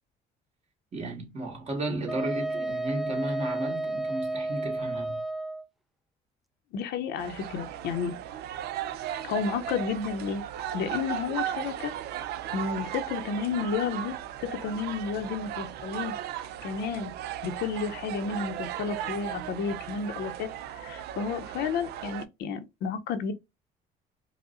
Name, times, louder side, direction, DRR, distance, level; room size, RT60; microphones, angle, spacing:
voice 1, 0.9-5.2, right 1 dB, 40° right, 1.7 m, -33 dB
Wind instrument woodwind instrument, 2.1-5.6, right 2 dB, ahead, 0.3 m, -32 dB
voice 2, 6.7-8.1 9.2-10.4 10.7-11.9 12.5-16.2 16.6-17.1 17.4-20.5 20.7-23.3, left 6 dB, 75° left, 0.7 m, -31 dB
sound 1, 7.2-22.3, right 11 dB, 70° right, 0.5 m, -36 dB
4.9 x 2.1 x 2.5 m
cardioid pair, 110°, 17 cm